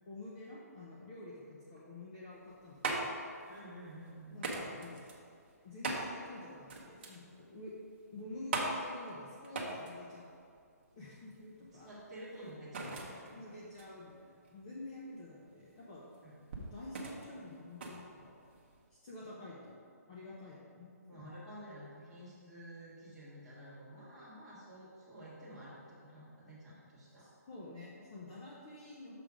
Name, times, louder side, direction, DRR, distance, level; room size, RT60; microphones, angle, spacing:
voice 1, 0.1-3.2 4.3-5.1 5.6-7.7 8.1-10.3 11.0-11.9 13.3-16.0 16.6-18.4 18.9-19.8 20.1-21.3 27.2-29.2, left 2 dB, 25° left, -6 dB, 0.8 m, -49 dB
sound 1, 2.3-18.9, right 2 dB, 40° right, 1.0 m, -42 dB
voice 2, 3.5-4.4 11.8-13.5 16.2-16.4 21.1-27.3, equal, 5° right, -13 dB, 1.8 m, -51 dB
6.7 x 5.6 x 4.9 m, 2.3 s
hypercardioid pair, 175°, 9 cm